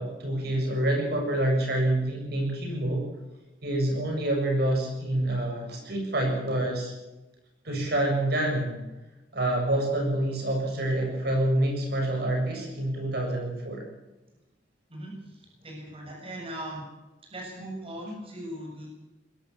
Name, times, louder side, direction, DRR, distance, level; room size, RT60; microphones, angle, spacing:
voice 1, 0.0-3.0 3.6-6.9 7.6-8.7 9.3-13.8, right 1 dB, 65° right, 1 dB, 7.4 m, -27 dB
voice 2, 15.6-16.8 17.3-18.9, right 1 dB, 35° right, 0 dB, 7.2 m, -38 dB
21.5 x 17.0 x 7.2 m, 1.0 s
head